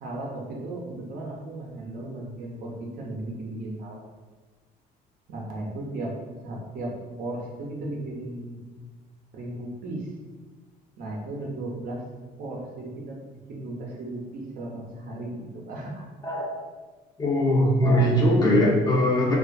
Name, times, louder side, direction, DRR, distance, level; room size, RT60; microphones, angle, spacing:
voice 1, 0.0-4.0 5.3-6.1 6.4-6.9 7.2-8.8 9.3-10.1 11.0-12.0 12.4-13.2 13.5-16.1, right 2 dB, 60° right, -2 dB, 0.7 m, -35 dB
voice 2, 16.2-16.6 17.2-19.4, equal, 25° left, -3 dB, 0.6 m, -21 dB
2.5 x 2.4 x 2.3 m, 1.3 s
cardioid pair, 110°, 17 cm